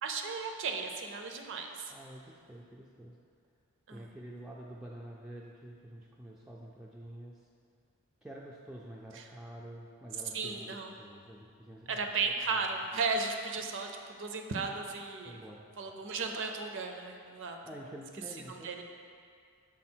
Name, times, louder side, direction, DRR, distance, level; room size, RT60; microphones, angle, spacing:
voice 1, 0.0-1.9 3.9-4.1 9.1-9.3 10.3-10.9 11.9-15.5 15.8-17.6 18.5-18.8, right 4 dB, 55° right, 4 dB, 0.5 m, -35 dB
voice 2, 1.9-3.2 3.9-7.4 8.2-12.0 12.5-12.6 15.2-15.7 17.6-18.7, right 1 dB, 5° right, -4 dB, 0.3 m, -48 dB
6.3 x 4.0 x 4.4 m, 2.3 s
head